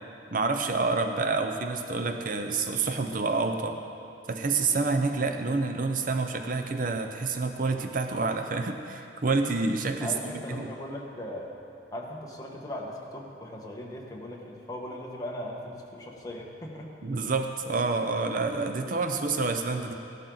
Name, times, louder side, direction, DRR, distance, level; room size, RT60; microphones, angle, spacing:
voice 1, 0.3-3.8 4.3-10.1 10.5-10.7 17.0-19.9, right 3 dB, 45° right, 6 dB, 0.6 m, -28 dB
voice 2, 10.0-11.5 11.9-16.9, left 1 dB, 20° left, -2 dB, 1.4 m, -38 dB
15.5 x 11.5 x 3.9 m, 2.7 s
head